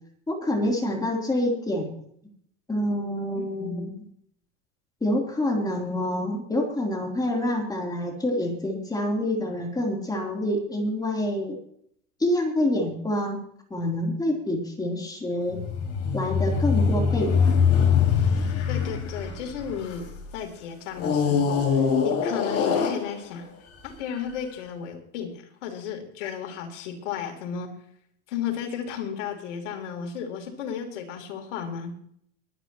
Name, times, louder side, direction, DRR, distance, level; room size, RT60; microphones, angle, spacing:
voice 1, 0.3-1.9 2.7-3.9 5.0-11.6 12.2-13.4 13.7-15.6 16.1-17.3, left 1 dB, 10° left, 0 dB, 3.5 m, -27 dB
voice 2, 3.4-3.9 18.7-23.5 23.8-27.7 28.3-32.0, left 7 dB, 80° left, 3 dB, 3.5 m, -34 dB
sound 1, 15.5-20.2 21.0-23.5 24.2-24.3, left 6 dB, 45° left, 4.2 m, -23 dB
23.0 x 10.0 x 3.1 m, 0.66 s
supercardioid pair, 130°, 36 cm